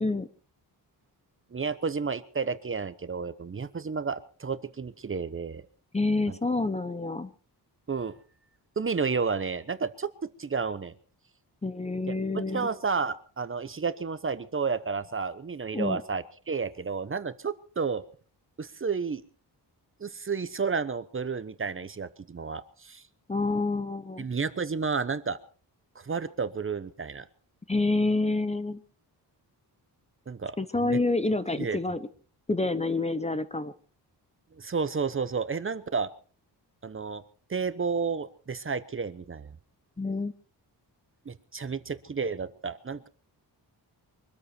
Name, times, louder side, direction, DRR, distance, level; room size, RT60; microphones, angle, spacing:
voice 1, 1.5-5.6 6.3-6.4 7.9-8.1 8.8-10.1 10.4-10.9 12.3-18.0 18.6-19.2 20.0-23.0 24.2-25.4 25.9-27.3 30.3-30.6 30.8-31.0 31.6-31.8 34.6-36.1 36.8-37.2 37.5-39.5 41.3-43.1, right 5 dB, 30° right, 13 dB, 0.9 m, -31 dB
voice 2, 5.9-7.3 11.6-12.7 15.7-16.0 23.3-24.3 27.7-28.8 30.6-32.1 32.5-33.7 40.0-40.3, left 2 dB, 15° left, 13 dB, 0.9 m, -28 dB
24.0 x 13.5 x 4.4 m, 0.40 s
wide cardioid pair, 140°, 40 cm